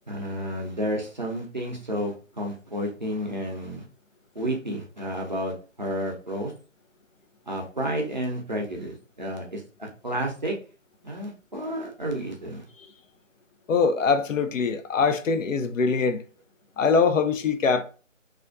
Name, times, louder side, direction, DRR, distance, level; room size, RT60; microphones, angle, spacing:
voice 1, 0.1-3.8 4.4-6.5 7.5-10.6 11.0-12.6, equal, 35° right, 0.5 m, -31 dB
voice 2, 13.7-16.2 16.8-17.8, left 5 dB, 75° left, 0.5 m, -23 dB
2.4 x 2.1 x 2.5 m
figure-of-eight pair, 165°, 39 cm